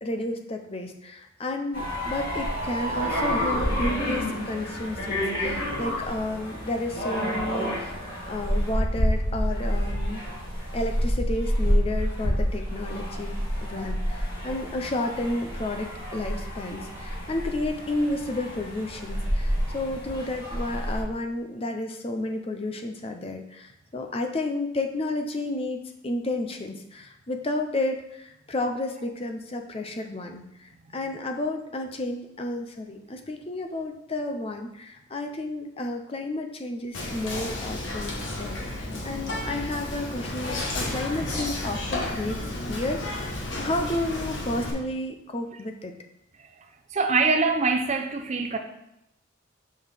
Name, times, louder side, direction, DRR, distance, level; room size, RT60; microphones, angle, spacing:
voice 1, 0.0-8.0 8.3-10.3 10.7-45.9, left 2 dB, 30° left, 4 dB, 0.5 m, -31 dB
sound 1, 1.7-21.0, equal, 45° left, 2.6 m, -29 dB
Whispering, 36.9-44.7, left 2 dB, 70° left, 1.3 m, -32 dB
voice 2, 46.9-48.6, right 4 dB, 35° right, 6 dB, 0.5 m, -24 dB
6.3 x 5.5 x 3.4 m, 0.82 s
head